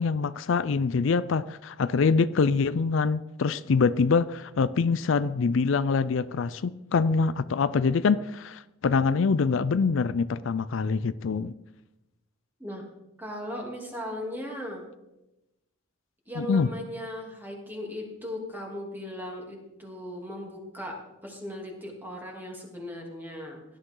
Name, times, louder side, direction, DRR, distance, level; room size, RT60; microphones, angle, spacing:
voice 1, 0.0-11.5 16.4-16.7, left 5 dB, 65° left, 15 dB, 0.4 m, -25 dB
voice 2, 13.2-14.8 16.3-23.6, left 1 dB, 10° right, -1 dB, 3.0 m, -37 dB
17.5 x 11.5 x 3.8 m, 0.93 s
head